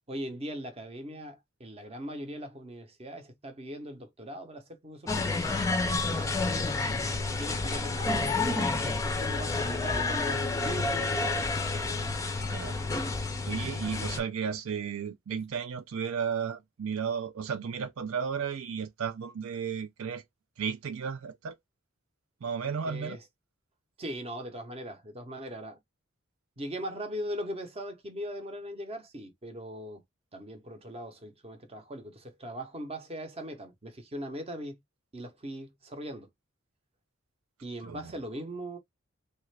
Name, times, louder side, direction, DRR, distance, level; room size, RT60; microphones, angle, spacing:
voice 1, 0.1-5.4 7.1-11.4 22.9-23.2 24.0-25.8 26.6-30.0 30.3-34.8 35.1-36.3 37.6-38.8, equal, 30° right, 0.7 m, -40 dB
sound 1, 5.1-14.2, left 3 dB, 15° left, 0.5 m, -29 dB
voice 2, 5.9-6.3 6.8-6.9 12.4-12.8 13.4-20.2 20.6-21.6 22.4-23.2 37.8-38.1, right 6 dB, 85° right, 0.4 m, -34 dB
3.2 x 2.4 x 3.2 m
head